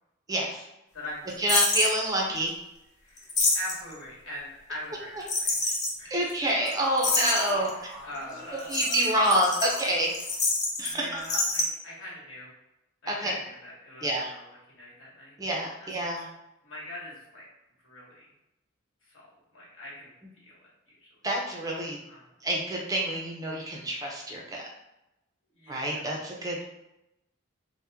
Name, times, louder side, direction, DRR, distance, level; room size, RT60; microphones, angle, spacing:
voice 1, 0.3-0.7 1.4-2.5 6.1-7.7 8.7-10.1 10.8-11.1 13.1-13.3 14.0-14.3 15.4-16.3 21.2-22.0 22.4-24.6 25.7-26.6, right 1 dB, 15° right, -1 dB, 0.4 m, -27 dB
voice 2, 0.9-1.5 3.0-5.6 6.0-6.3 7.5-7.7 8.0-8.6 10.8-12.5 13.0-15.4 15.8-16.0 16.6-17.4 17.8-18.3 19.0-20.1 20.4-20.6 20.9-21.1 21.7-21.8 22.1-22.3 23.6-23.8 25.5-26.1, left 1 dB, 75° left, -5 dB, 1.2 m, -42 dB
sound 1, 1.5-1.9 3.2-3.9 5.3-5.9 6.3-6.4 6.7-6.8 7.0-7.7 8.6-10.9 11.2-11.6, left 3 dB, 35° left, 0.6 m, -27 dB
sound 2, 6.1-6.2 6.6-10.5 10.9-11.0, left 1 dB, 55° left, 1.2 m, -42 dB
2.9 x 2.1 x 3.4 m, 0.91 s
head